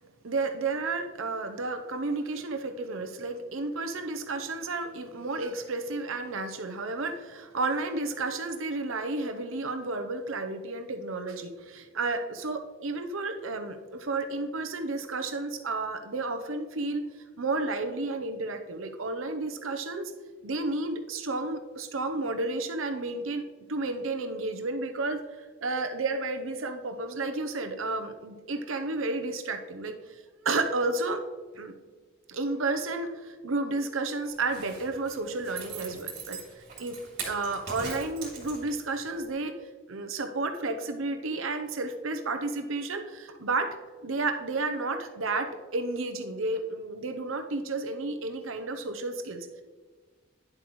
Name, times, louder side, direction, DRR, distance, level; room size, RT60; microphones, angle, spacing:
voice 1, 0.2-17.1 17.4-20.1 20.4-23.4 23.7-31.2 31.5-31.7 32.3-37.0 37.2-39.6 39.9-43.8 44.0-49.6, right 3 dB, 80° right, 7 dB, 0.8 m, -32 dB
Zipper (clothing), 34.3-38.9 39.3-39.4, right 5 dB, 50° right, 2.6 m, -41 dB
10.0 x 7.5 x 3.1 m, 1.4 s
head